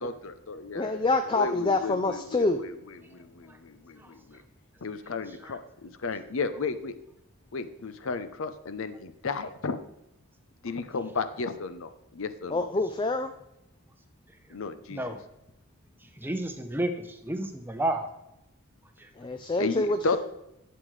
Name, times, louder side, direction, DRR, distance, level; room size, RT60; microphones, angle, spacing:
voice 1, 0.0-1.1 1.4-2.7 3.1-4.4 4.8-6.9 7.5-9.8 10.6-12.6 14.5-15.0 19.6-20.2, left 4 dB, 65° left, 10 dB, 0.6 m, -33 dB
voice 2, 0.7-2.6 12.5-13.3 19.2-20.2, left 2 dB, 20° left, 7 dB, 0.3 m, -26 dB
voice 3, 5.3-5.6 14.9-15.2 16.2-18.1 19.0-19.1, right 1 dB, 10° right, 6 dB, 0.7 m, -32 dB
11.0 x 7.9 x 3.2 m, 0.88 s
head